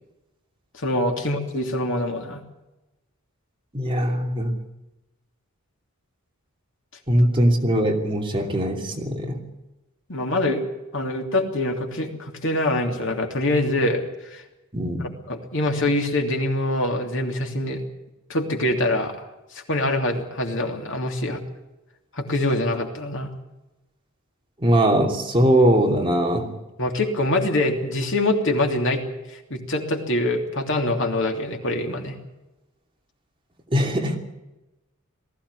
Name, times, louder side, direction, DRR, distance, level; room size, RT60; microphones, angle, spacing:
voice 1, 0.7-2.4 10.1-10.6 10.9-14.0 14.3-14.4 15.3-17.8 18.3-19.3 19.5-21.4 22.1-23.3 26.8-29.0 29.5-32.2, left 1 dB, 60° left, 3 dB, 3.0 m, -24 dB
voice 2, 3.7-4.5 7.1-9.4 14.7-15.1 24.6-26.6 33.7-34.2, right 1 dB, 25° right, 1 dB, 2.8 m, -21 dB
19.5 x 15.5 x 9.7 m, 0.99 s
head